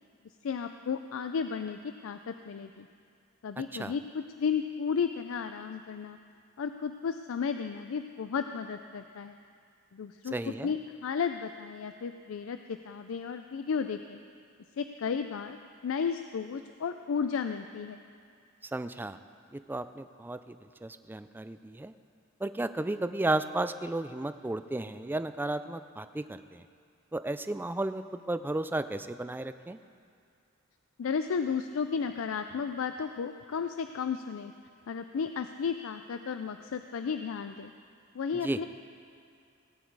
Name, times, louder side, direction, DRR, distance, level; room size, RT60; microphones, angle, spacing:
voice 1, 0.4-2.9 3.4-6.2 6.6-9.4 9.9-14.2 14.8-15.6 15.8-18.0 31.0-34.5 34.9-37.7 38.1-38.7, left 6 dB, 70° left, 8 dB, 0.4 m, -33 dB
voice 2, 10.3-10.7 18.7-19.2 19.5-20.6 20.8-21.9 22.4-26.6 27.1-29.8 38.4-38.6, right 2 dB, 10° right, 11 dB, 0.3 m, -33 dB
17.5 x 9.4 x 4.6 m, 2.4 s
head